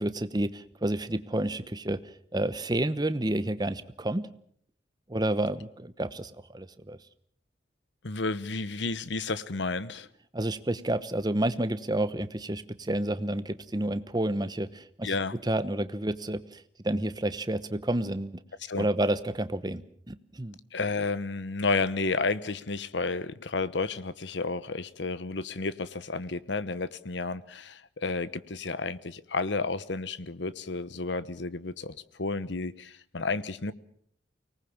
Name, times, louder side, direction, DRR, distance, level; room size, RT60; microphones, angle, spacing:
voice 1, 0.0-2.0 2.3-4.3 5.1-7.0 10.3-15.1 15.4-18.4 18.8-19.8 20.1-20.6, right 1 dB, 20° right, 13 dB, 0.9 m, -30 dB
voice 2, 8.0-10.1 15.0-15.3 18.6-18.9 20.7-33.7, left 3 dB, 70° left, 16 dB, 1.0 m, -31 dB
24.5 x 19.0 x 7.2 m, 0.63 s
head